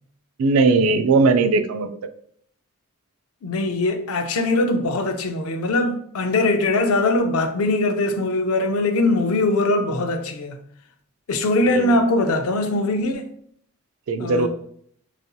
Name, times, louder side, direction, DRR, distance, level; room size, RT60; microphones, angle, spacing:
voice 1, 0.4-1.9 11.7-11.9 14.1-14.5, right 3 dB, 75° right, 0.3 m, -18 dB
voice 2, 3.4-10.6 11.3-13.3 14.2-14.5, left 2 dB, 80° left, 0.5 m, -21 dB
4.0 x 2.6 x 2.3 m
head